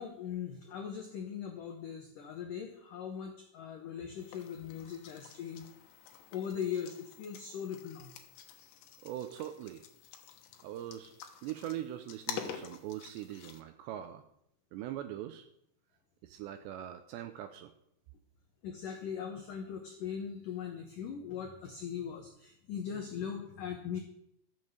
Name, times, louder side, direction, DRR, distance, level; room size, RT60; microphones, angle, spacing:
voice 1, 0.0-5.6 6.3-8.1 18.6-24.0, left 8 dB, 85° left, 4 dB, 1.9 m, -40 dB
sound 1, 4.2-13.6, left 8 dB, 70° left, 3.1 m, -48 dB
voice 2, 9.0-9.8 10.6-11.1 11.4-14.2 14.7-15.5 16.2-17.7, right 12 dB, 80° right, 9 dB, 2.6 m, -41 dB
13.5 x 7.5 x 7.9 m, 0.75 s
omnidirectional pair, 5.7 m